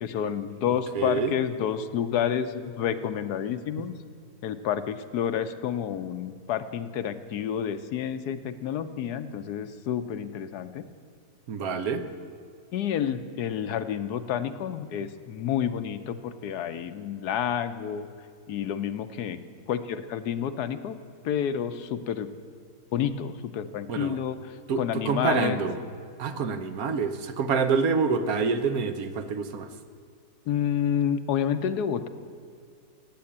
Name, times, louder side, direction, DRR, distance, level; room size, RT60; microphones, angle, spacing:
voice 1, 0.0-3.9 4.4-10.8 12.7-18.1 18.5-19.4 19.7-21.0 21.2-22.3 22.9-25.6 30.5-32.1, left 9 dB, 75° left, 10 dB, 1.3 m, -29 dB
voice 2, 0.9-1.3 11.5-12.1 23.9-24.2 24.7-25.8 26.2-29.7, right 5 dB, 65° right, 9 dB, 1.3 m, -27 dB
16.5 x 8.6 x 8.7 m, 2.3 s
omnidirectional pair, 1.7 m